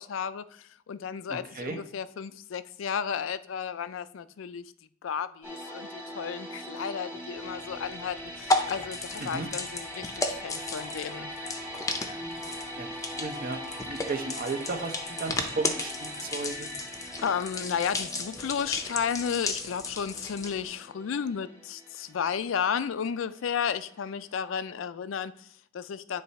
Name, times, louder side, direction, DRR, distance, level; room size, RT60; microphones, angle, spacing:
voice 1, 0.0-4.6 5.0-11.3 17.2-26.2, left 7 dB, 80° left, 0.4 m, -33 dB
voice 2, 1.3-1.8 9.2-9.5 12.8-16.7, right 3 dB, 45° right, 0.8 m, -35 dB
sound 1, 5.4-24.3 24.5-24.7, equal, 10° right, 1.4 m, -41 dB
Blood Gush Waterfall, 7.4-20.6, left 2 dB, 15° left, 0.6 m, -34 dB
9.9 x 3.3 x 4.1 m
head